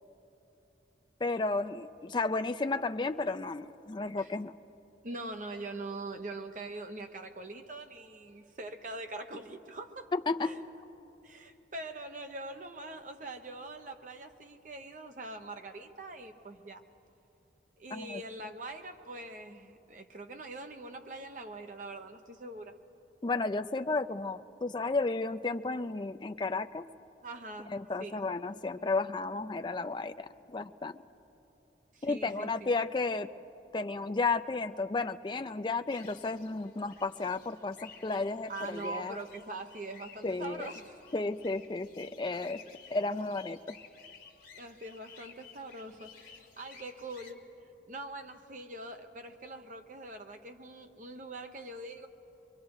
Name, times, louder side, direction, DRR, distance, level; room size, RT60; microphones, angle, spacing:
voice 1, 1.2-4.6 10.1-10.5 17.9-18.2 23.2-26.8 27.7-31.0 32.0-33.3 33.7-39.2 40.2-40.7 41.1-42.6 42.9-43.8, left 3 dB, 25° left, 9 dB, 0.4 m, -33 dB
voice 2, 5.0-10.1 10.4-10.6 11.2-16.8 17.8-22.7 27.2-28.2 31.9-32.7 38.5-41.0 42.7-42.8 44.6-47.4 47.9-52.1, right 2 dB, 45° right, 5 dB, 1.0 m, -43 dB
sound 1, 35.9-47.3, left 6 dB, 45° left, 1.8 m, -54 dB
23.5 x 23.0 x 4.8 m, 2.9 s
head